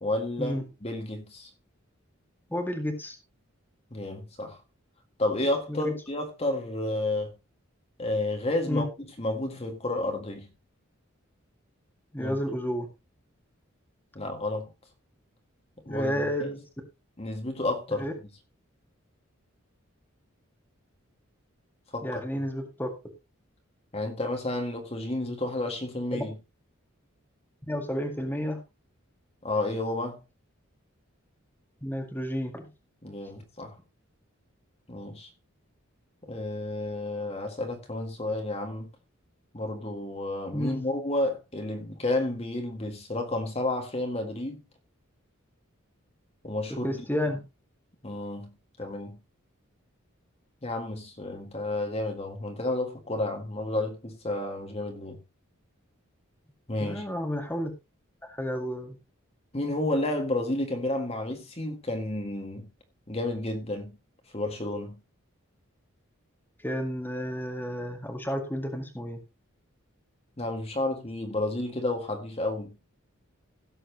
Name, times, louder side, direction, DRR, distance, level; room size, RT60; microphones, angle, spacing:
voice 1, 0.0-1.5 3.9-4.6 5.2-7.3 8.0-10.5 12.2-12.4 14.2-14.7 15.9-16.6 17.2-18.1 21.9-22.2 23.9-26.4 29.4-30.2 33.0-33.8 34.9-35.3 36.2-38.9 39.5-44.6 46.4-46.9 48.0-48.5 48.8-49.2 50.6-55.2 56.7-57.0 59.5-62.7 63.1-64.0 64.3-65.0 70.4-72.8, left 2 dB, 30° left, 1.9 m, -31 dB
voice 2, 2.5-3.2 5.7-5.9 8.7-8.8 12.1-12.9 15.9-16.6 18.0-18.1 22.0-22.9 26.1-26.2 27.7-28.6 31.8-32.7 40.5-40.8 46.8-47.4 56.8-57.7 58.2-59.0 66.6-69.2, equal, 10° left, 1.9 m, -31 dB
17.0 x 7.7 x 3.0 m
head